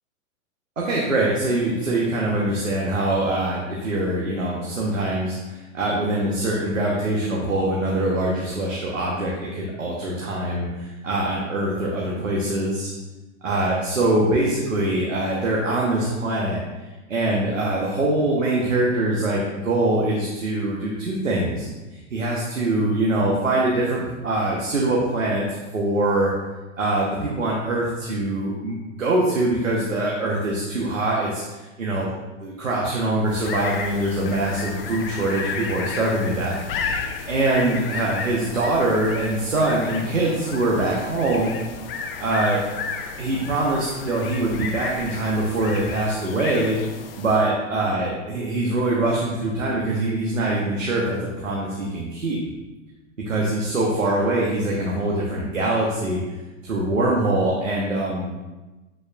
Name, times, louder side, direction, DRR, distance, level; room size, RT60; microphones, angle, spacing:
voice 1, 0.8-12.9 13.4-16.6 17.1-26.3 26.8-32.1 32.4-41.6 42.2-42.6 43.2-46.8 47.2-52.4 53.3-56.2 56.6-58.3, right 2 dB, 75° right, -3 dB, 1.2 m, -23 dB
sound 1, 33.2-47.5, left 5 dB, 45° left, 0.7 m, -33 dB
7.3 x 6.2 x 2.4 m, 1.1 s
figure-of-eight pair, 100°, 39 cm